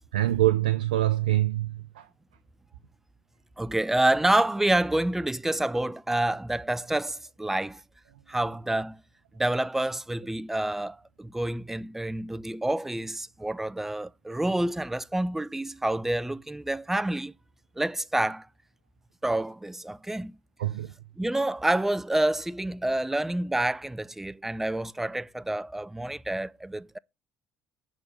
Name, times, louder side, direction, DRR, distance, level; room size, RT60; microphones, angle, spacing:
voice 1, 0.1-2.1 20.6-20.9, right 14 dB, 85° right, 0.5 m, -25 dB
voice 2, 3.6-7.8 8.3-9.0 9.4-17.3 17.8-18.5 19.2-20.3 21.2-27.0, right 1 dB, 5° right, 0.4 m, -28 dB
10.5 x 3.7 x 6.7 m
hypercardioid pair, 60°, 5 cm